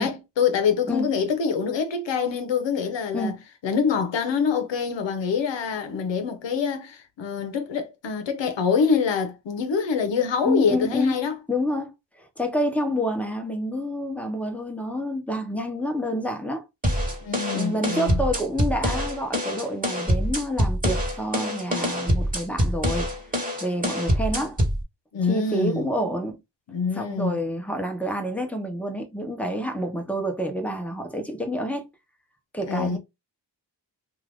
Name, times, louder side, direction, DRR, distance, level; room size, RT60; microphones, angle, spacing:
voice 1, 0.0-3.3 3.6-11.4 17.2-18.2 25.1-25.9 26.7-27.4 32.7-33.0, left 6 dB, 90° left, 0.8 m, -25 dB
voice 2, 10.4-11.1 11.5-11.9 12.2-16.6 17.5-23.1 23.6-24.6 25.3-26.4 26.9-31.8 32.5-33.0, equal, 5° left, 0.8 m, -28 dB
sound 1, 16.8-24.8, equal, 20° right, 1.2 m, -25 dB
2.6 x 2.5 x 3.4 m
wide cardioid pair, 80°, 43 cm